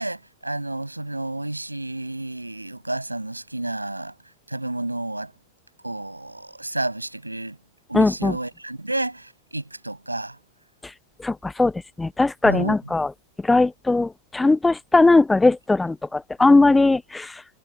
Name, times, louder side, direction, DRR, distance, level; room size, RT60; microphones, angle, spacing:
voice 1, 0.0-4.1 4.5-5.3 5.8-7.6 7.9-10.4 12.4-12.9, right 2 dB, 85° right, 7.0 m, -30 dB
voice 2, 7.9-8.3 11.2-11.3 11.6-11.7 12.0-13.1 13.5-14.1 14.3-17.2, left 3 dB, 10° left, 0.7 m, -18 dB
figure-of-eight pair, 90°, 0 cm